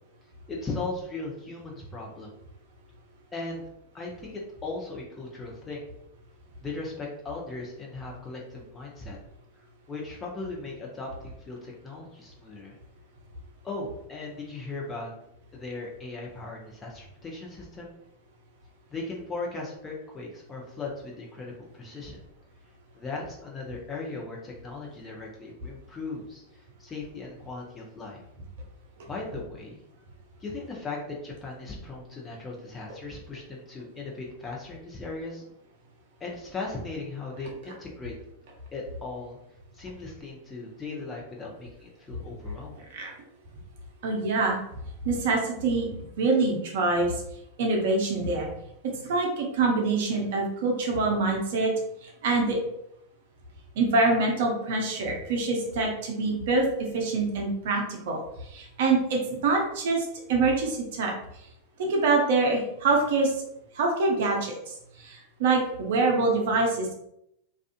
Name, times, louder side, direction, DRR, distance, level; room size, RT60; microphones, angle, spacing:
voice 1, 0.5-2.3 3.3-3.6 3.9-5.8 6.6-9.2 9.9-12.8 13.6-15.1 15.5-17.9 18.9-22.2 22.9-28.2 29.1-29.8 30.4-35.4 36.2-38.1 38.7-39.4 39.7-42.8, left 3 dB, 20° left, -2 dB, 0.7 m, -38 dB
voice 2, 44.0-44.6 45.0-45.9 46.2-47.1 47.6-48.5 48.8-51.7 52.0-52.6 53.8-61.1 61.8-63.3 63.7-66.9, right 3 dB, 55° right, 0 dB, 0.6 m, -25 dB
2.4 x 2.4 x 2.4 m, 0.78 s
figure-of-eight pair, 90°, 0 cm